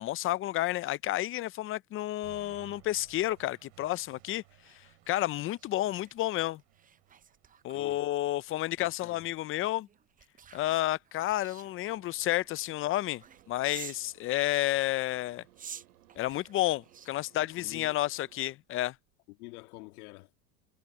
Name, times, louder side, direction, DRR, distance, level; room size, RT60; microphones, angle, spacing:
voice 1, 0.0-4.4 4.7-6.6 7.6-9.9 10.5-13.2 13.5-15.4 16.2-18.9, left 15 dB, 30° left, 0.5 m, -31 dB
sound 1, 2.2-10.2, right 32 dB, 70° right, 3.2 m, -60 dB
sound 2, 2.9-14.1 14.7-18.3 18.8-19.0, right 7 dB, 20° right, 0.7 m, -53 dB
voice 2, 8.8-9.3 17.4-17.9 19.3-20.3, left 22 dB, 75° left, 2.4 m, -48 dB
sound 3, 11.6-18.5, right 16 dB, 85° right, 2.8 m, -62 dB
supercardioid pair, 110°, 44 cm